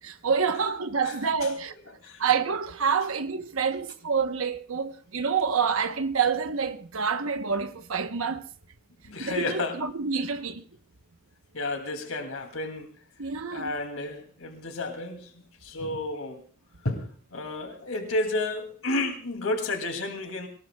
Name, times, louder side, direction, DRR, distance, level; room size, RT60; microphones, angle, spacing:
voice 1, 0.0-1.7 2.2-8.5 9.2-10.6 13.2-13.7, right 6 dB, 90° right, 1.0 m, -27 dB
voice 2, 9.0-9.8 11.5-12.9 13.5-15.3 15.6-16.4 16.8-20.5, left 2 dB, 85° left, 2.7 m, -31 dB
23.5 x 19.5 x 2.3 m
head